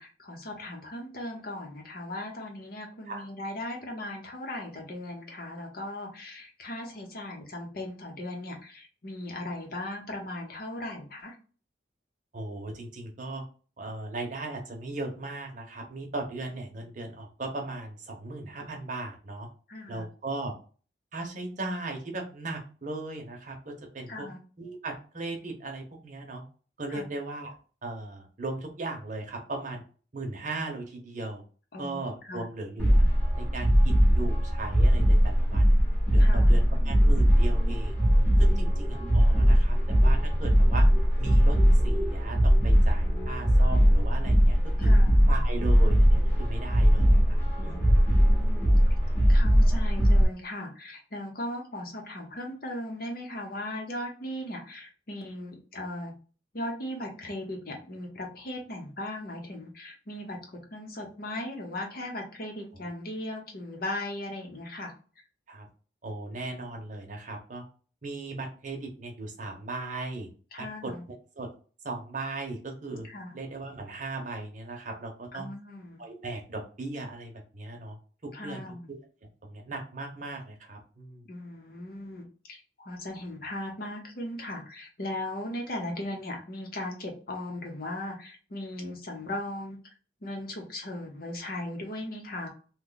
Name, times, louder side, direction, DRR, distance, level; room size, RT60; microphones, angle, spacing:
voice 1, 0.0-11.4 19.7-20.0 24.1-24.4 26.9-27.0 31.7-32.4 36.2-36.6 38.5-38.6 44.8-45.2 47.6-47.8 48.1-48.7 49.3-56.1 56.5-60.4 60.7-64.9 70.5-71.0 73.0-73.3 75.3-76.0 78.3-78.9 81.2-89.8 90.2-92.5, left 1 dB, 55° left, 2 dB, 0.9 m, -38 dB
voice 2, 12.3-13.4 13.8-19.5 19.9-20.5 21.1-24.3 24.6-26.4 26.8-27.5 27.8-29.8 30.1-31.4 31.8-33.0 33.3-35.8 36.1-38.0 38.4-40.9 41.2-41.6 41.8-44.9 45.3-48.0 62.8-62.9 65.5-65.7 66.0-67.6 68.0-70.3 70.6-70.9 71.4-71.5 71.8-73.1 73.3-75.5 76.0-78.0 78.2-79.0 79.4-81.2, right 2 dB, 45° right, 2 dB, 0.8 m, -37 dB
sound 1, 32.8-50.2, equal, 10° left, 1.0 m, -21 dB
3.0 x 2.3 x 3.8 m, 0.38 s
head